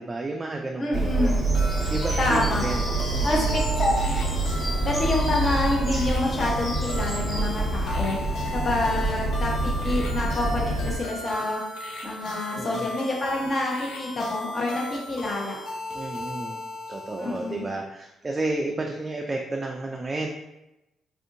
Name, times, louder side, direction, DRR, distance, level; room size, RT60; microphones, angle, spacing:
voice 1, 0.0-1.4 1.9-3.5 12.5-12.9 15.9-16.6 16.9-20.3, right 2 dB, 25° right, 2 dB, 0.3 m, -31 dB
voice 2, 0.8-1.4 2.2-2.6 3.2-4.1 4.8-8.2 8.5-11.6 12.0-15.6 17.2-17.7, left 2 dB, 40° left, -2 dB, 0.9 m, -27 dB
Bird vocalization bird call bird song, 0.9-11.0, right 2 dB, 5° right, 1.1 m, -26 dB
sound 1, 1.5-17.7, left 2 dB, 70° left, 0.6 m, -37 dB
3.6 x 2.6 x 2.5 m, 0.96 s
cardioid pair, 90°, 0 cm